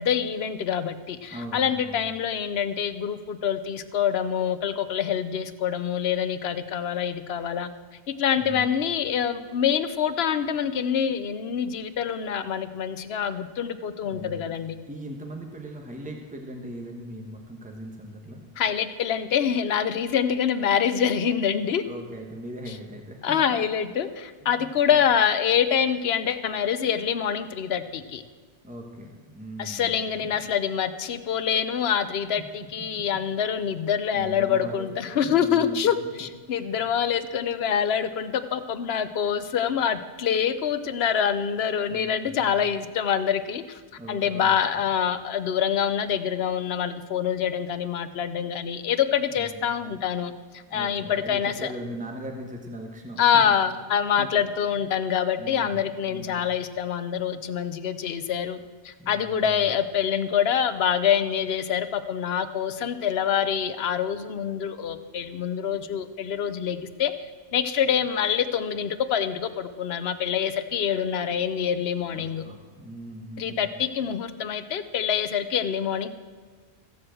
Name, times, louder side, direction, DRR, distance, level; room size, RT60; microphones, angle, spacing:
voice 1, 0.0-7.7 8.2-14.8 18.6-21.8 23.2-28.2 29.6-43.8 44.1-51.5 53.2-58.6 58.8-67.1 67.5-72.4 73.4-76.1, left 8 dB, 70° left, 12 dB, 1.0 m, -25 dB
voice 2, 1.3-2.1 8.4-8.7 14.0-14.5 14.9-18.4 21.8-23.6 24.4-25.0 28.6-30.5 32.9-33.0 33.6-33.8 34.1-35.8 36.2-36.3 36.6-36.9 41.8-42.6 44.0-44.9 49.3-49.7 50.7-53.6 54.2-54.3 54.7-54.8 55.4-56.5 59.0-59.7 72.1-73.8, equal, 5° right, 2 dB, 1.3 m, -40 dB
15.0 x 7.8 x 7.6 m, 1.5 s
omnidirectional pair, 1.1 m